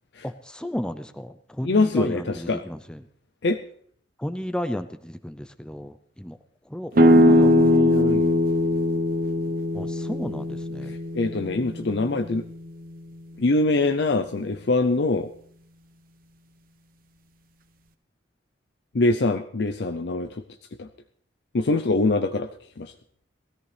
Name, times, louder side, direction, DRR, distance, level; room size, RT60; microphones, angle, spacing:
voice 1, 0.2-3.0 4.2-6.4 6.7-7.9 9.7-11.0, equal, 5° left, 10 dB, 0.5 m, -33 dB
voice 2, 1.6-2.6 3.4-3.6 7.0-8.4 10.8-12.4 13.4-15.3 18.9-20.4 20.8-20.9 21.5-22.5 22.8-22.9, left 2 dB, 60° left, 7 dB, 0.6 m, -24 dB
sound 1, 6.9-12.5, left 1 dB, 50° right, 1.0 m, -21 dB
18.5 x 14.0 x 3.3 m, 0.62 s
head